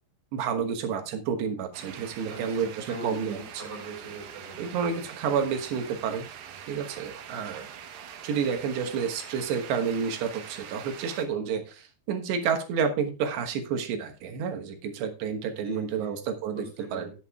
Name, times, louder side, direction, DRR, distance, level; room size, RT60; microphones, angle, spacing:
voice 1, 0.3-3.4 4.6-6.3 6.7-7.7 8.2-16.7 16.9-17.1, right 6 dB, 90° right, 5 dB, 3.5 m, -30 dB
sound 1, 1.7-11.3, right 8 dB, 70° right, 2.7 m, -44 dB
voice 2, 2.3-4.7 15.6-16.1 16.5-17.1, right 1 dB, 35° right, 0 dB, 5.0 m, -41 dB
18.0 x 8.1 x 2.3 m, 0.33 s
omnidirectional pair, 4.8 m